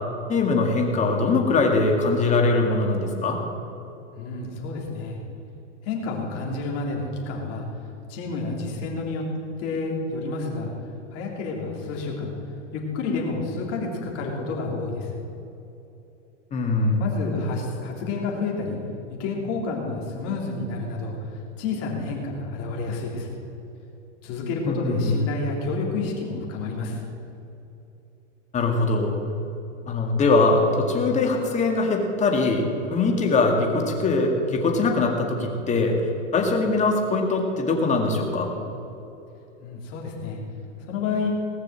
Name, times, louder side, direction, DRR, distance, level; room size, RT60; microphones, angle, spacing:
voice 1, 0.3-3.4 16.5-17.0 24.7-25.2 28.5-29.2 29.9-36.0 36.3-38.5, left 3 dB, 20° left, 2 dB, 1.9 m, -22 dB
voice 2, 4.2-5.2 5.8-7.7 8.1-9.2 9.6-10.7 11.1-12.3 12.7-15.2 17.0-18.8 19.1-23.3 24.2-27.0 39.6-40.4 40.8-41.3, left 3 dB, 40° left, -1 dB, 3.4 m, -29 dB
19.0 x 6.6 x 7.6 m, 2.9 s
hypercardioid pair, 135°, 37 cm